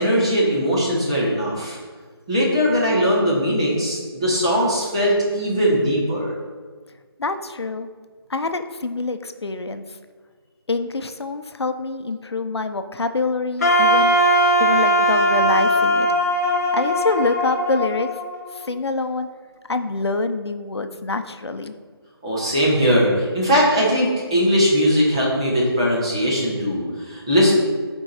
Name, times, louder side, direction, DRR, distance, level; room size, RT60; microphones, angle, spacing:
voice 1, 0.0-1.8 2.3-6.3 22.2-27.5, equal, 15° right, -6 dB, 1.1 m, -20 dB
voice 2, 7.2-7.9 8.3-10.0 10.7-14.2 14.6-16.1 16.7-18.1 18.5-19.3 19.7-21.7, left 3 dB, 80° left, 9 dB, 0.7 m, -25 dB
Wind instrument woodwind instrument, 13.6-18.6, equal, 40° left, 1.2 m, -19 dB
7.9 x 4.6 x 4.3 m, 1.5 s
figure-of-eight pair, 180°, 13 cm